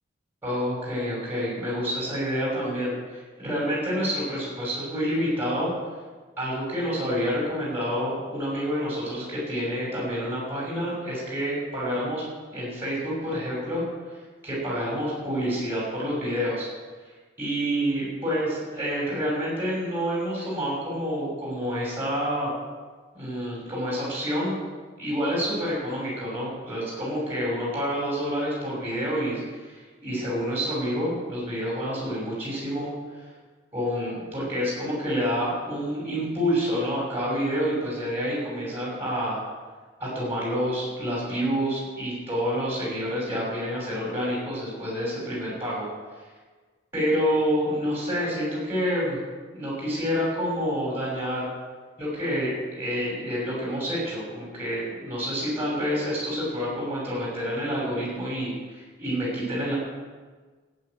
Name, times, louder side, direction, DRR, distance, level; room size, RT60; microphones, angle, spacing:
voice 1, 0.4-5.7 6.4-12.2 12.5-13.8 14.4-16.7 17.4-22.5 23.1-24.5 25.0-33.2 33.7-39.4 40.0-45.9 46.9-49.2 49.5-51.5 52.0-59.7, equal, 10° right, -6 dB, 6.3 m, -28 dB
14.5 x 8.9 x 8.8 m, 1.4 s
head